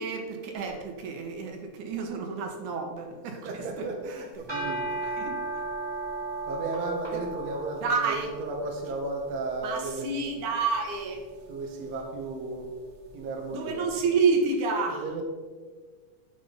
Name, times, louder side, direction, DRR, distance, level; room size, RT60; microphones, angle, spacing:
voice 1, 0.0-3.9 5.0-5.4 7.1-7.2 7.8-8.3 9.6-11.2 13.5-15.1, right 4 dB, 80° right, 3 dB, 2.9 m, -29 dB
voice 2, 3.3-5.2 6.5-10.1 11.5-12.7 13.1-13.9 14.9-15.2, right 2 dB, 60° right, 1 dB, 2.5 m, -34 dB
sound 1, 4.3-13.7, right 2 dB, 10° right, 2.3 m, -37 dB
12.0 x 8.3 x 4.1 m, 1.5 s
omnidirectional pair, 3.4 m